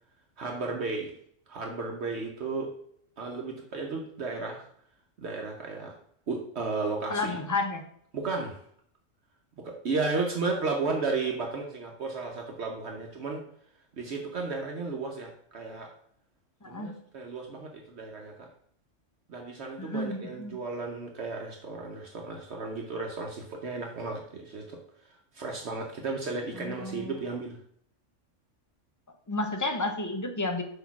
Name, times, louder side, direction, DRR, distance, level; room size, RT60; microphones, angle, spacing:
voice 1, 0.4-1.1 1.5-2.7 3.2-4.7 5.2-5.9 6.3-7.4 8.1-8.6 9.6-13.4 14.0-15.9 16.7-18.5 19.3-24.8 25.0-27.6, right 3 dB, 65° right, 1 dB, 1.1 m, -34 dB
voice 2, 7.1-7.8 16.6-16.9 19.8-20.6 26.6-27.1 29.3-30.6, left 2 dB, 20° left, 4 dB, 0.6 m, -31 dB
6.2 x 3.0 x 5.8 m, 0.64 s
omnidirectional pair, 1.3 m